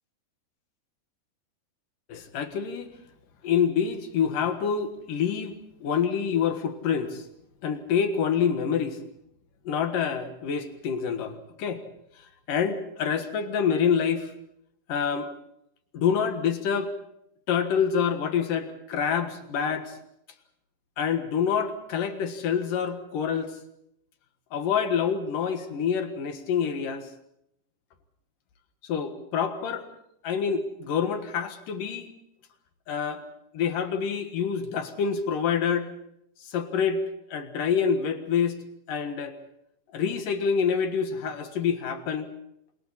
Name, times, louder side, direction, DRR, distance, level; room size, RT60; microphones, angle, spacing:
voice 1, 2.1-2.9 3.4-7.2 7.6-9.0 9.6-11.8 12.2-14.3 14.9-15.3 15.9-16.9 17.5-19.9 21.0-23.5 24.5-27.1 28.8-29.9 30.2-32.1 32.9-33.2 33.5-35.9 36.4-37.0 37.3-38.6 38.9-39.4 39.9-42.3, left 7 dB, 65° left, 7 dB, 3.0 m, -27 dB
29.0 x 27.0 x 4.2 m, 0.76 s
omnidirectional pair, 4.5 m